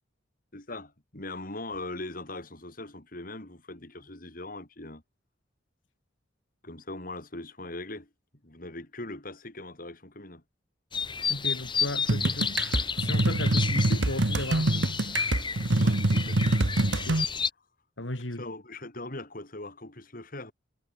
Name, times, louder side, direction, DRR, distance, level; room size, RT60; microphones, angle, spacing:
voice 1, 0.5-5.0 6.6-8.1 8.4-10.4 15.8-16.4 17.3-17.4 18.4-20.5, left 2 dB, 50° left, 4.3 m, -40 dB
sound 1, 10.9-17.5, left 6 dB, 25° left, 1.8 m, -31 dB
voice 2, 11.3-14.9 17.0-17.2 18.0-18.4, left 1 dB, 85° left, 3.9 m, -36 dB
sound 2, 12.1-17.2, right 2 dB, 75° right, 1.5 m, -25 dB
head